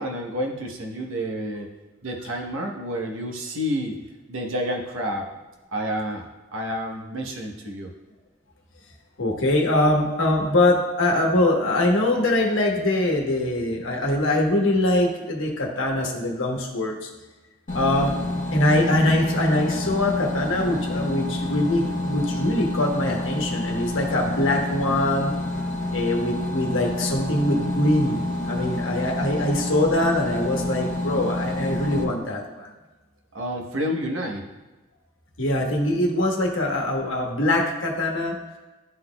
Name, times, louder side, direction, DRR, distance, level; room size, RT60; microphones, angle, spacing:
voice 1, 0.0-1.7 2.0-5.3 5.7-7.9 33.3-34.5, equal, 80° right, 1 dB, 0.9 m, -29 dB
voice 2, 9.2-17.1 17.7-18.2 18.5-25.4 25.9-32.7 35.4-38.3, left 1 dB, 75° left, 1 dB, 1.1 m, -23 dB
sound 1, 17.7-32.0, left 2 dB, 40° left, 0.9 m, -28 dB
11.5 x 4.0 x 2.2 m, 1.1 s
head